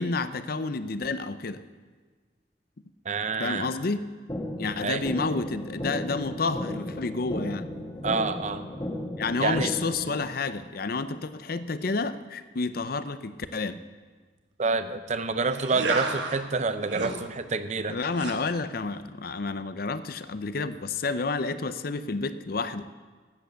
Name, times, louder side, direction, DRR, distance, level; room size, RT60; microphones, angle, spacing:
voice 1, 0.0-1.6 3.4-4.0 4.6-7.7 9.2-13.8 17.9-22.9, left 3 dB, 50° left, 13 dB, 0.6 m, -30 dB
voice 2, 3.0-3.7 4.8-5.0 8.0-8.6 9.4-9.7 14.6-18.0, right 4 dB, 40° right, 11 dB, 0.6 m, -28 dB
sound 1, 4.3-10.3, left 1 dB, 20° left, 1.4 m, -35 dB
sound 2, 15.5-16.4 16.8-17.2 18.1-18.4, right 3 dB, 65° right, 1.3 m, -31 dB
12.5 x 8.2 x 8.0 m, 1.5 s
head